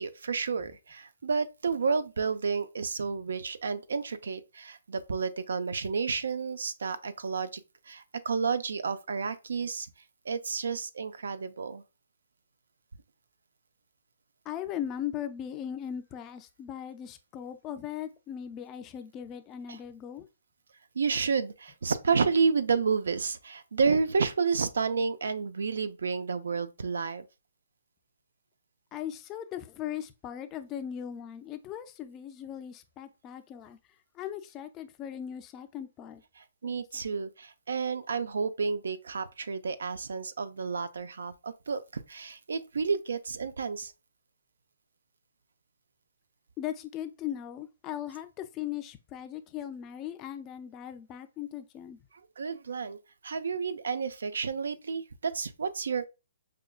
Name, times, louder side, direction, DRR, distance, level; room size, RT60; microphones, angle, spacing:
voice 1, 0.0-7.6 7.9-9.9 10.3-11.8 19.7-19.8 21.0-27.3 36.4-43.9 52.4-53.0 53.2-56.0, right 5 dB, 80° right, 0.4 m, -30 dB
voice 2, 14.5-20.3 28.9-33.8 34.1-36.2 36.6-36.8 46.6-52.0, left 10 dB, 20° left, 0.3 m, -38 dB
5.0 x 2.2 x 2.3 m
hypercardioid pair, 155°, 0 cm